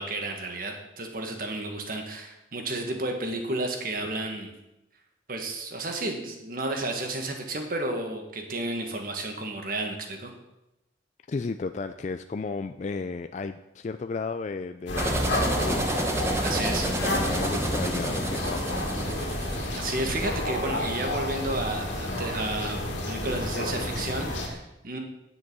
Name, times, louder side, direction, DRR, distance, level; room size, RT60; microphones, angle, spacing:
voice 1, 0.0-4.5 5.3-10.3 16.4-16.9 19.1-19.3 19.7-25.0, right 2 dB, 50° right, 3 dB, 1.6 m, -32 dB
voice 2, 11.3-15.8 16.8-18.8, left 4 dB, 40° left, 8 dB, 0.3 m, -34 dB
sound 1, 14.9-24.5, left 1 dB, 80° left, 2.2 m, -31 dB
sound 2, 15.0-20.3, right 1 dB, 15° right, 0.9 m, -29 dB
9.7 x 7.8 x 6.1 m, 0.92 s
head